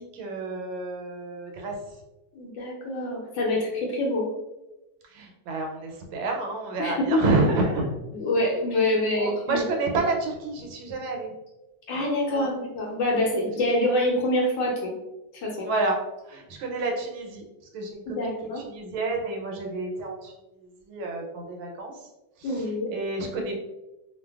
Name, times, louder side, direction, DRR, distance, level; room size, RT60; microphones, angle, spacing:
voice 1, 0.0-1.8 5.1-7.9 8.9-11.3 12.3-12.5 15.6-16.0 16.2-17.4 17.7-20.3 20.6-22.1 22.4-23.6, right 2 dB, 90° right, 2 dB, 1.5 m, -29 dB
voice 2, 2.3-4.3 6.8-7.2 8.1-9.6 11.9-14.9 15.3-15.7 18.1-18.6 22.4-22.9, left 1 dB, 75° left, -1 dB, 1.2 m, -26 dB
3.2 x 2.2 x 2.2 m, 1.0 s
omnidirectional pair, 2.2 m